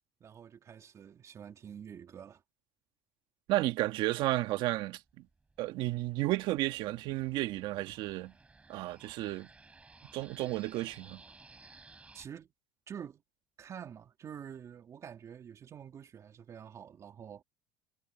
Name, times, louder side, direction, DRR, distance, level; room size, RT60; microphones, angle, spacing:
voice 1, 0.2-2.4 12.1-12.5 12.9-13.2 13.6-17.4, right 8 dB, 30° right, 3.3 m, -47 dB
voice 2, 3.5-5.0 5.6-8.3 8.7-9.5 10.1-11.2, right 17 dB, 60° right, 1.6 m, -32 dB
sound 1, 5.1-12.2, right 3 dB, 15° right, 4.7 m, -58 dB
cardioid pair, 135°, 10 cm